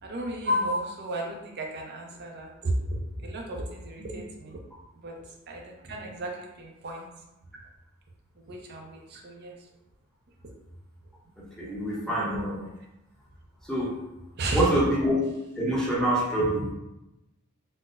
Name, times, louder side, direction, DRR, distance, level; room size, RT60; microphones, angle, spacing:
voice 1, 0.0-4.6 5.0-5.1 5.5-7.1 8.5-9.5 14.4-14.7, equal, 45° right, 0 dB, 0.5 m, -33 dB
voice 2, 11.4-12.7 13.6-13.9 14.5-15.2 15.6-16.7, right 1 dB, ahead, -7 dB, 0.7 m, -26 dB
4.1 x 2.0 x 2.5 m, 0.94 s
head